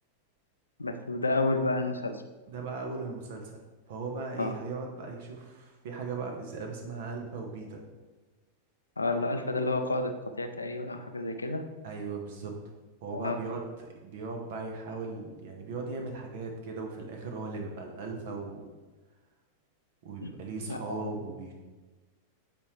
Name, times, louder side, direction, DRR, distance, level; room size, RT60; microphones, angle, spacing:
voice 1, 0.8-2.2 4.4-4.5 9.0-11.6 13.1-13.4 20.2-20.3 20.7-21.0, left 2 dB, 80° left, 7 dB, 0.5 m, -30 dB
voice 2, 2.5-3.6 3.9-7.8 11.8-12.5 13.0-18.7 20.0-21.5, right 4 dB, 55° right, 2 dB, 1.0 m, -38 dB
8.5 x 4.5 x 3.1 m, 1.2 s
figure-of-eight pair, 90°, 0 cm